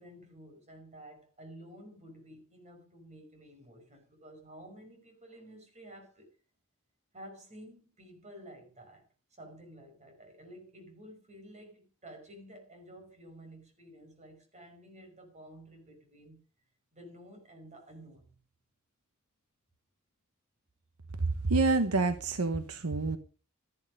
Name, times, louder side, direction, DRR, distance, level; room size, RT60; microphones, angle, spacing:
voice 1, 0.0-6.3 7.1-9.0 9.4-16.4 16.9-18.3, right 1 dB, 30° right, 5.4 m, -52 dB
voice 2, 21.2-23.2, right 3 dB, 85° right, 1.1 m, -28 dB
13.5 x 11.0 x 5.3 m
head